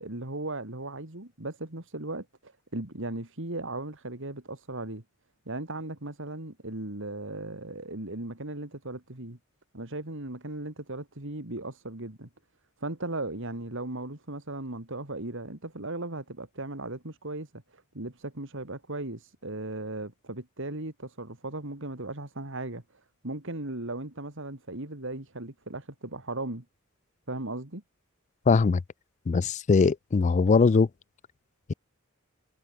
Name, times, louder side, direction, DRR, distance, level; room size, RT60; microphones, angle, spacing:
voice 1, 0.0-5.0 5.5-9.4 9.7-12.3 12.8-22.8 23.2-26.6 27.3-27.8, right 2 dB, 65° right, 3.2 m, -37 dB
voice 2, 28.5-28.8 29.3-30.9, left 4 dB, 35° left, 0.4 m, -21 dB
head